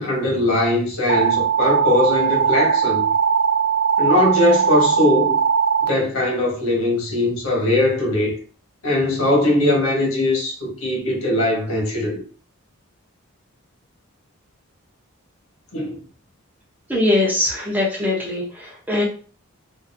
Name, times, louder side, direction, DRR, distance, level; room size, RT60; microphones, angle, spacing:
voice 1, 0.0-3.0 4.0-5.4 5.9-8.3 8.8-12.2 15.7-16.0, left 1 dB, 80° left, 1.2 m, -20 dB
sound 1, 1.1-5.9, right 7 dB, 45° right, 0.3 m, -19 dB
voice 2, 16.9-18.4 18.9-19.0, left 2 dB, 10° right, 0.6 m, -20 dB
2.6 x 2.5 x 2.5 m
head